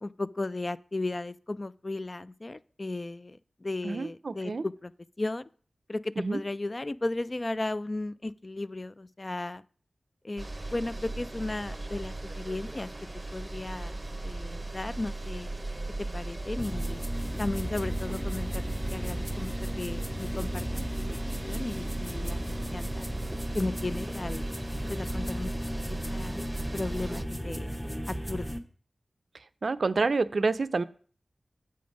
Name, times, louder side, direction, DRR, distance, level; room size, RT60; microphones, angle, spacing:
voice 1, 0.0-4.9 5.2-5.4 5.9-9.6 10.2-10.5 10.7-12.9 13.3-15.5 16.1-17.1 17.4-18.6 18.9-20.8 21.4-23.1 23.5-24.5 24.9-25.5 25.9-26.4 26.7-27.7 28.1-28.6, left 2 dB, 35° left, 15 dB, 0.3 m, -35 dB
voice 2, 3.8-4.6 6.2-6.4 29.6-30.8, right 3 dB, 70° right, 13 dB, 0.4 m, -28 dB
sound 1, 10.4-27.2, right 2 dB, 25° right, 0.7 m, -38 dB
sound 2, 16.6-28.6, equal, 5° left, 0.8 m, -35 dB
7.7 x 5.3 x 5.1 m, 0.44 s
wide cardioid pair, 65°, 0 cm